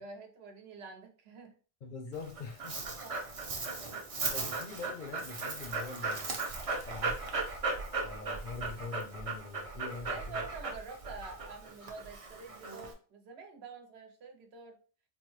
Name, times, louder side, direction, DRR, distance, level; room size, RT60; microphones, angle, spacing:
voice 1, 0.0-1.6 3.0-3.2 10.0-14.8, right 4 dB, 90° right, 4 dB, 1.0 m, -47 dB
voice 2, 1.8-2.8 3.5-3.7 4.3-6.5 6.8-7.3 8.0-10.4, left 4 dB, 60° left, 5 dB, 0.7 m, -44 dB
Dog, 2.1-12.9, right 3 dB, 40° right, 0.6 m, -37 dB
3.9 x 2.1 x 3.1 m, 0.38 s
omnidirectional pair, 1.0 m